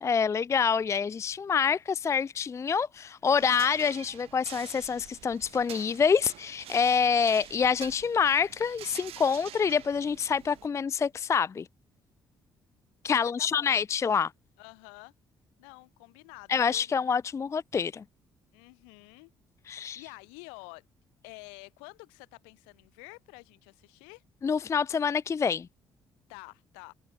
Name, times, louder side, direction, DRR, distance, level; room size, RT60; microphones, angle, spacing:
voice 1, 0.0-11.7 13.0-14.3 16.5-18.0 19.7-20.0 24.4-25.7, left 6 dB, 25° left, 0.3 m, -26 dB
sound 1, 3.3-10.7, right 13 dB, 60° right, 1.8 m, -47 dB
voice 2, 6.7-7.3 13.1-13.7 14.6-15.1 15.6-16.9 18.5-19.3 19.7-20.8 21.2-24.2 26.3-26.9, left 40 dB or more, 75° left, 6.5 m, -49 dB
figure-of-eight pair, 45°, 11 cm